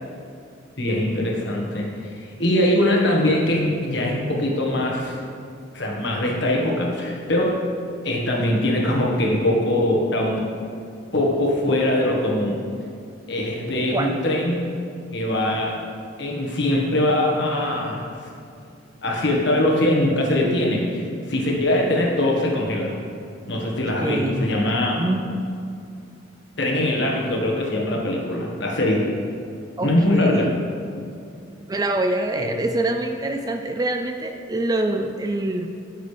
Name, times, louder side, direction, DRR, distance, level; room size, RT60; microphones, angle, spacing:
voice 1, 0.8-5.2 5.7-7.6 8.0-10.5 11.1-12.6 13.3-14.6 15.1-15.8 16.2-18.3 19.0-22.9 23.5-24.9 26.6-29.1 29.8-30.5 32.3-32.5, left 1 dB, 60° left, -2 dB, 1.5 m, -22 dB
voice 2, 24.0-24.6 24.9-25.4 29.8-30.6 31.7-35.7, right 2 dB, 20° right, 5 dB, 0.3 m, -25 dB
12.5 x 6.6 x 3.4 m, 2.5 s
head